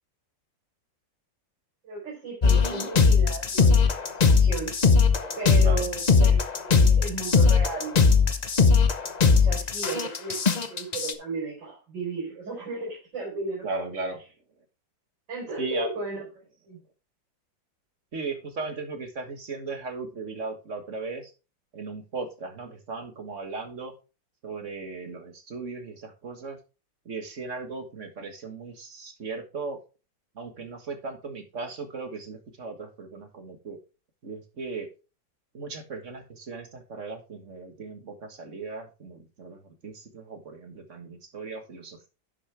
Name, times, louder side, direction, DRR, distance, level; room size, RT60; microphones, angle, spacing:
voice 1, 1.8-4.7 5.4-8.0 9.2-14.0 15.3-16.3 16.6-16.8, right 3 dB, 70° right, -4 dB, 5.0 m, -35 dB
sound 1, 2.4-11.1, left 5 dB, 60° left, 0.4 m, -20 dB
voice 2, 13.6-14.2 15.6-15.9 18.1-21.3 21.7-23.9 24.4-26.6 27.1-29.8 30.4-33.8 34.2-34.9 35.5-42.1, right 4 dB, 40° right, 6 dB, 1.7 m, -37 dB
11.0 x 6.4 x 3.3 m, 0.31 s
omnidirectional pair, 2.0 m